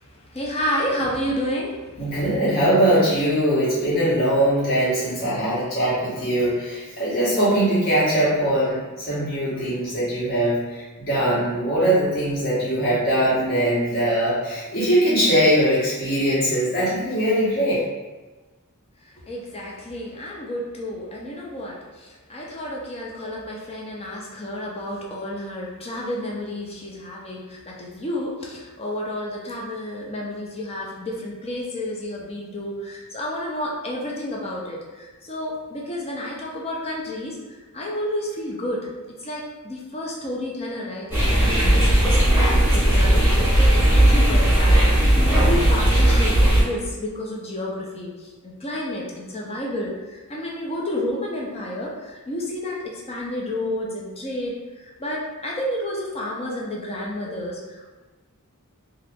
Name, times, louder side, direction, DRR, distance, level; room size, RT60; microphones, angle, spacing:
voice 1, 0.0-2.1 19.3-37.4 37.7-57.9, left 1 dB, 25° left, -3 dB, 0.6 m, -31 dB
voice 2, 2.0-17.8, right 1 dB, 45° left, -11 dB, 1.2 m, -21 dB
sound 1, 41.1-46.6, right 1 dB, 10° right, 0.9 m, -17 dB
2.9 x 2.4 x 3.5 m, 1.2 s
head